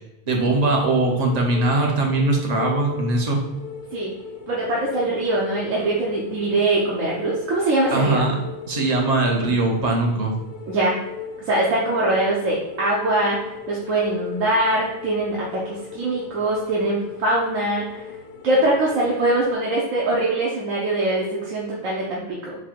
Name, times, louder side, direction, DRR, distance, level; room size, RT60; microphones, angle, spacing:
voice 1, 0.3-3.4 7.9-8.4 8.7-10.3, right 2 dB, 40° right, 0 dB, 0.6 m, -21 dB
sound 1, 0.6-19.6, left 7 dB, 90° left, 1.0 m, -37 dB
voice 2, 4.5-8.3 10.7-11.0 11.5-18.1 18.4-22.6, right 2 dB, 70° right, -5 dB, 1.1 m, -22 dB
4.3 x 2.2 x 4.4 m, 0.94 s
omnidirectional pair, 1.4 m